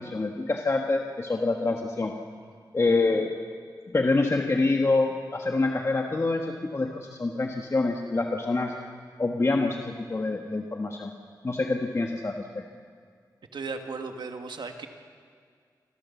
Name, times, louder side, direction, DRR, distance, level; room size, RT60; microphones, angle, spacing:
voice 1, 0.0-2.1 2.7-3.3 3.9-8.8 9.2-11.1 11.4-12.6, left 3 dB, 40° left, 2 dB, 1.3 m, -26 dB
voice 2, 13.5-14.9, right 4 dB, 85° right, 5 dB, 1.7 m, -36 dB
27.0 x 15.5 x 7.1 m, 2.1 s
wide cardioid pair, 90°, 8 cm